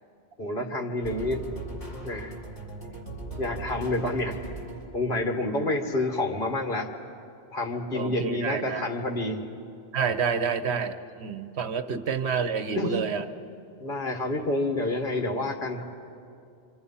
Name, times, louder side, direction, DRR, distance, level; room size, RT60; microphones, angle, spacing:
voice 1, 0.4-1.4 2.0-2.4 3.4-4.4 4.9-6.9 7.5-9.4 12.7-13.0 13.8-15.8, left 2 dB, 50° left, 3 dB, 2.0 m, -28 dB
sound 1, 1.0-5.2, right 2 dB, 30° left, 3.6 m, -39 dB
voice 2, 7.9-8.9 9.9-13.3, right 6 dB, 80° right, 9 dB, 1.2 m, -28 dB
26.5 x 25.5 x 5.6 m, 2.5 s
omnidirectional pair, 1.1 m